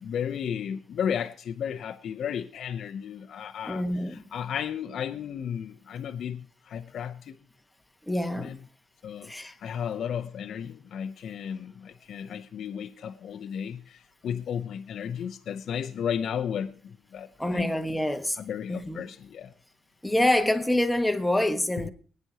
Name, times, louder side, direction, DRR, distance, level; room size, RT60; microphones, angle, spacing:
voice 1, 0.0-7.4 8.4-8.6 9.0-17.8 18.4-19.5, left 8 dB, 65° left, 0.8 m, -34 dB
voice 2, 3.7-4.2 8.1-8.6 9.2-9.5 17.4-18.4 18.7-19.0 20.0-21.9, left 1 dB, 5° left, 1.3 m, -26 dB
20.5 x 9.5 x 2.9 m
cardioid pair, 90°, 0 cm